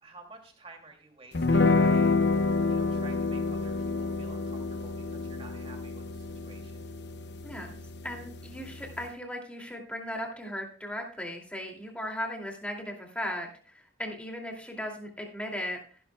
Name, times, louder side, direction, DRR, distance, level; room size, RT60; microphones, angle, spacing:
voice 1, 0.0-2.2 2.7-6.8, right 3 dB, 30° right, 2 dB, 2.6 m, -51 dB
sound 1, 1.3-9.1, left 3 dB, 65° left, 0.8 m, -28 dB
voice 2, 7.4-7.8 8.0-16.0, equal, 5° left, 0 dB, 2.5 m, -37 dB
15.5 x 11.5 x 2.3 m, 0.43 s
head